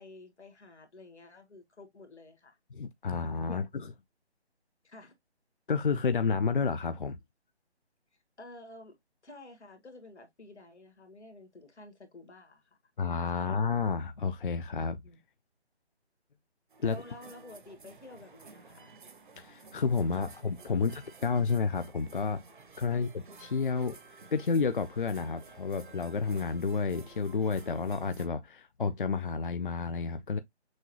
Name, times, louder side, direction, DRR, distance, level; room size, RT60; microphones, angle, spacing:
voice 1, 0.0-2.6 3.5-3.9 4.8-5.1 8.4-8.9 9.2-12.8 13.3-13.6 15.0-15.2 16.8-19.0 22.9-23.0, left 2 dB, 80° left, 1.8 m, -51 dB
voice 2, 2.7-3.8 5.7-7.2 13.0-15.0 16.8-17.0 19.4-22.4 22.8-23.1 23.4-24.0 24.3-30.4, left 5 dB, 50° left, 0.4 m, -30 dB
sound 1, 16.7-28.3, right 4 dB, 45° right, 0.7 m, -53 dB
6.3 x 2.3 x 3.0 m
figure-of-eight pair, 165°, 33 cm